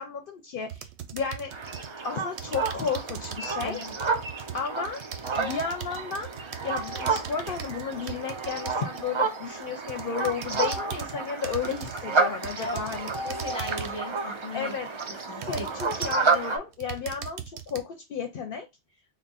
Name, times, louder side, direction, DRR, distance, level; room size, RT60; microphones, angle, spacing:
voice 1, 0.0-1.5 2.0-3.8 4.5-5.0 5.4-6.3 6.6-13.1 14.5-14.9 15.4-17.4 17.7-18.7, left 6 dB, 60° left, 0.7 m, -33 dB
sound 1, 0.7-1.9 2.4-9.1 9.6-11.1 11.4-12.1 12.4-14.1 14.7-14.8 15.4-16.4 16.7-17.8, right 9 dB, 90° right, 0.9 m, -39 dB
sound 2, 1.5-16.6, right 4 dB, 40° right, 0.4 m, -31 dB
voice 2, 3.6-3.9 12.6-13.0 13.2-14.7 15.3-15.7, left 2 dB, 5° left, 1.2 m, -37 dB
3.6 x 2.1 x 4.0 m
omnidirectional pair, 1.1 m